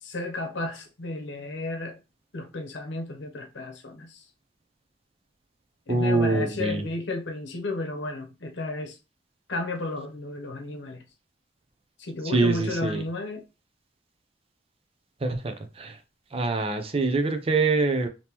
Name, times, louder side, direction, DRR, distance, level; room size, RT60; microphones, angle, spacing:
voice 1, 0.0-2.0 2.3-4.3 5.9-9.0 9.5-11.0 12.0-13.4, left 2 dB, 75° left, 0.8 m, -33 dB
voice 2, 5.9-6.8 12.2-13.0 15.2-16.0 16.3-18.1, right 3 dB, 30° right, 0.5 m, -24 dB
3.5 x 2.8 x 2.9 m
head